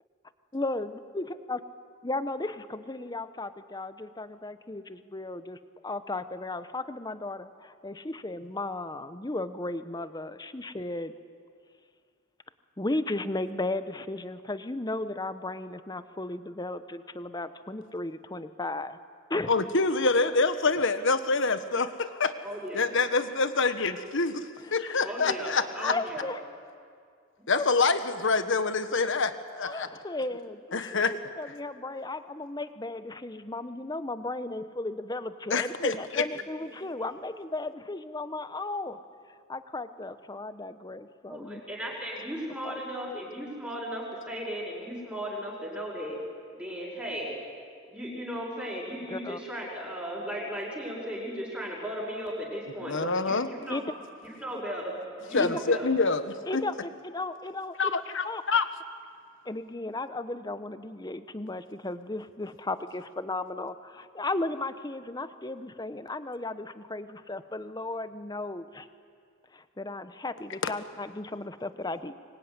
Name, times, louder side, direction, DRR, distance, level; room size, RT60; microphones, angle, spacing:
voice 1, 0.5-1.6 2.0-11.1 12.8-19.0 19.3-19.5 24.6-24.8 25.8-26.4 27.5-27.7 29.6-39.0 39.5-41.6 42.6-42.8 49.1-49.4 53.7-53.9 55.4-55.5 56.5-58.4 59.5-68.9 69.5-72.1, left 2 dB, 20° left, 12 dB, 0.9 m, -35 dB
voice 2, 19.5-22.3 22.7-25.9 27.5-29.9 30.7-31.1 35.5-35.9 52.8-53.5 55.3-56.6 57.8-58.7 70.6-70.7, left 4 dB, 60° left, 10 dB, 1.4 m, -26 dB
voice 3, 22.4-22.8 25.0-26.3 36.7-37.1 41.3-46.2 46.5-47.3 47.9-53.8 54.2-55.9, equal, 5° right, -6 dB, 5.9 m, -36 dB
25.5 x 22.0 x 9.8 m, 2.2 s
head